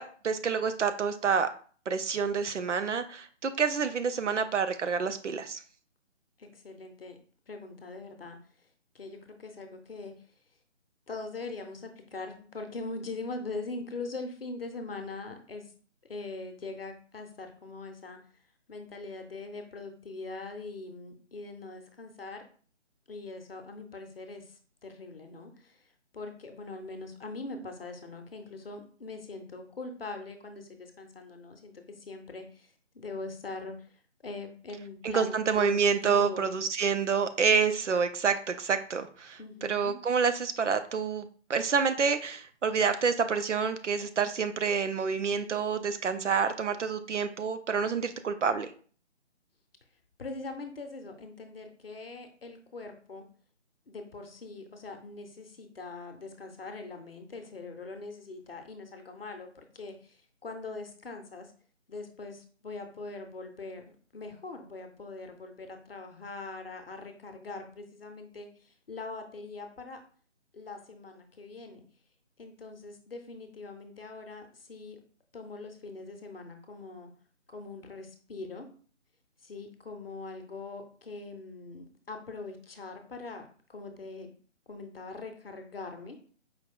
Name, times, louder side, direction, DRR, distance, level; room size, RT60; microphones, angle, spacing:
voice 1, 0.0-1.5 1.9-5.6 35.0-48.7, right 6 dB, 75° right, 10 dB, 0.6 m, -28 dB
voice 2, 6.4-7.2 7.5-8.4 8.9-10.1 11.1-15.6 16.1-18.2 18.7-22.4 23.1-24.5 24.8-25.8 26.1-33.7 34.2-36.5 39.4-40.0 50.2-53.2 53.9-61.5 61.9-70.0 70.5-71.8 72.4-75.0 75.3-77.1 77.5-78.7 79.4-84.3 84.7-86.2, left 3 dB, 50° left, 5 dB, 0.7 m, -42 dB
4.7 x 2.3 x 3.6 m, 0.43 s
figure-of-eight pair, 150°, 36 cm